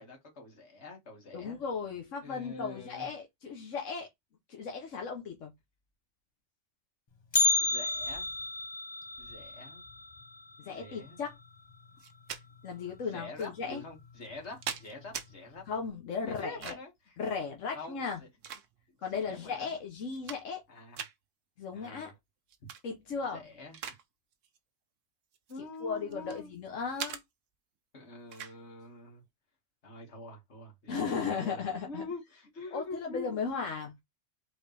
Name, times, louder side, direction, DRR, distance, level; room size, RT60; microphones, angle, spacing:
voice 1, 0.0-1.6 2.2-3.1 7.6-8.3 9.2-9.8 10.7-11.2 13.0-15.7 16.2-17.2 17.7-18.3 19.1-19.8 20.7-21.0 21.7-22.1 22.6-22.7 23.3-23.8 25.5-26.5 27.9-29.2 29.8-33.4, left 3 dB, 65° left, 2.3 m, -45 dB
voice 2, 1.3-4.1 4.5-5.5 10.6-11.3 12.6-13.8 15.7-16.7 17.2-18.2 19.0-20.6 21.6-22.1 22.8-23.4 25.8-27.2 30.9-32.0 32.7-33.9, left 5 dB, 90° left, 1.3 m, -36 dB
Bell, 7.3-11.4 11.7-11.8 12.3-12.4 13.2-13.3 14.0-14.3 14.7-14.8, left 3 dB, 25° left, 0.7 m, -32 dB
sound 1, 12.0-12.4 13.4-13.5 14.2-15.3 16.4-17.0 18.0-19.0 19.6-19.7 20.0-20.7 21.0-21.2 22.5-22.8 23.2-24.0 24.3-24.6 25.3-26.4 27.0-27.2 28.3-28.6, right 8 dB, 90° right, 1.1 m, -41 dB
4.6 x 3.5 x 3.3 m
omnidirectional pair, 1.3 m